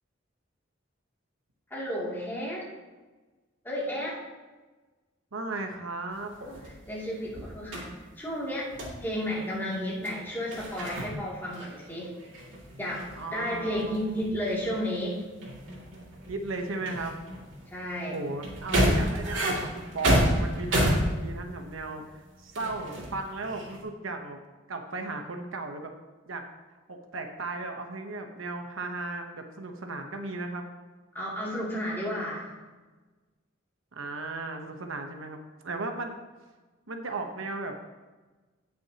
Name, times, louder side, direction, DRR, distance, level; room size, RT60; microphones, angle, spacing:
voice 1, 1.7-2.7 3.6-4.2 6.5-8.7 9.0-12.2 12.8-13.1 13.3-15.2 17.7-18.2 31.1-32.5, equal, 10° left, -6 dB, 2.6 m, -32 dB
voice 2, 5.3-6.3 13.2-14.3 16.3-17.1 18.1-24.4 24.7-25.9 26.3-26.4 26.9-30.6 33.9-35.4 35.6-36.2 36.9-37.8, right 3 dB, 80° right, 4 dB, 1.0 m, -36 dB
sound 1, 6.1-7.9 8.7-9.0 10.0-10.1 10.4-11.2 11.4-22.0 22.5-23.8, equal, 65° right, 2.6 m, -30 dB
17.0 x 6.2 x 2.9 m, 1.3 s
head